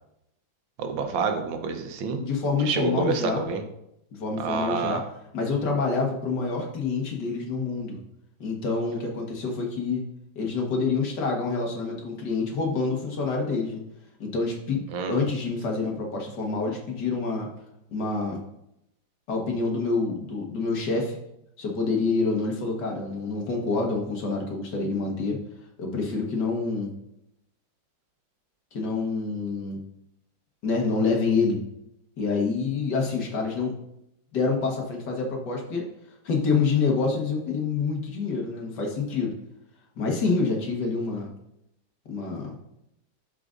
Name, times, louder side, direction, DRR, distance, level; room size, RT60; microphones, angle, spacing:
voice 1, 0.8-2.2 2.6-3.6 4.4-5.0 14.9-15.2, right 5 dB, 85° right, 6 dB, 1.6 m, -28 dB
voice 2, 2.2-3.5 4.1-5.0 5.3-8.0 8.4-10.0 10.4-13.8 14.2-17.5 17.9-18.4 19.3-21.2 21.6-25.4 25.8-26.9 28.7-29.8 30.6-31.6 32.2-33.7 34.3-35.9 36.2-39.3 40.0-41.3 42.1-42.5, left 4 dB, 65° left, 0 dB, 2.0 m, -27 dB
12.5 x 4.9 x 2.6 m, 0.82 s
omnidirectional pair, 2.0 m